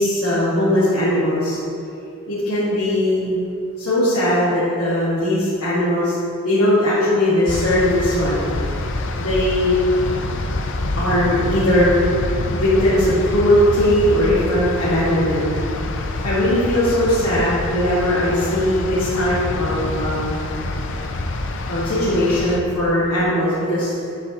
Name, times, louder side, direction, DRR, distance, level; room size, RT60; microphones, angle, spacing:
voice 1, 0.0-1.6 2.3-3.5 3.8-6.1 6.4-8.4 9.2-9.8 11.0-12.0 12.6-15.5 16.2-20.4 21.7-23.9, left 1 dB, 90° left, -11 dB, 1.9 m, -19 dB
sound 1, 7.5-22.6, left 2 dB, 55° left, 0.5 m, -26 dB
8.7 x 8.4 x 3.0 m, 2.6 s
head